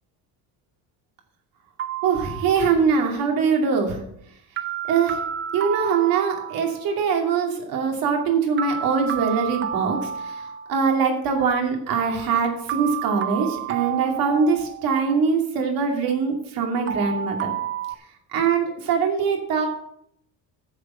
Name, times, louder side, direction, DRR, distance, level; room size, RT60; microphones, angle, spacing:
sound 1, 1.8-2.9 4.6-6.9 8.6-10.9 12.7-15.0 16.9-17.9, right 9 dB, 30° right, 0.5 m, -30 dB
voice 1, 2.0-4.0 4.9-5.2 5.5-10.1 10.7-17.5 18.3-19.7, right 5 dB, 60° right, 2 dB, 2.6 m, -22 dB
10.5 x 6.9 x 7.3 m, 0.73 s
cardioid pair, 165°, 39 cm